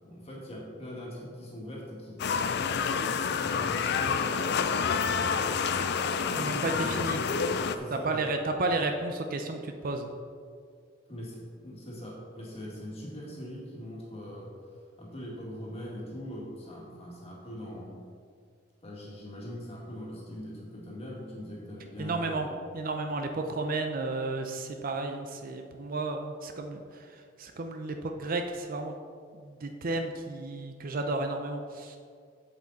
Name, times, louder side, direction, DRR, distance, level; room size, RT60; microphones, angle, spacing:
voice 1, 0.0-5.6 6.1-8.3 11.1-14.5 15.0-18.0 18.8-22.5, equal, 30° left, -4 dB, 2.0 m, -42 dB
sound 1, 2.2-7.8, left 6 dB, 55° left, 0.4 m, -28 dB
voice 2, 6.3-7.2 7.9-10.1 22.0-22.5 22.7-29.0 29.3-32.0, right 2 dB, 45° right, 5 dB, 0.5 m, -32 dB
7.9 x 7.4 x 4.1 m, 2.1 s
head